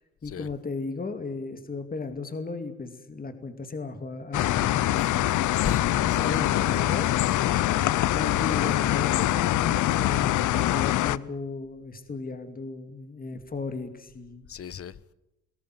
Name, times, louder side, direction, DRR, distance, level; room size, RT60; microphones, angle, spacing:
voice 1, 0.0-5.2 6.2-7.6 8.1-14.5, left 4 dB, 30° left, 2.4 m, -35 dB
sound 1, 4.3-11.2, left 14 dB, 75° left, 0.7 m, -24 dB
voice 2, 5.6-6.7 7.4-7.8 14.5-15.0, left 8 dB, 50° left, 1.0 m, -35 dB
21.0 x 17.5 x 9.6 m
cardioid pair, 90°, 30 cm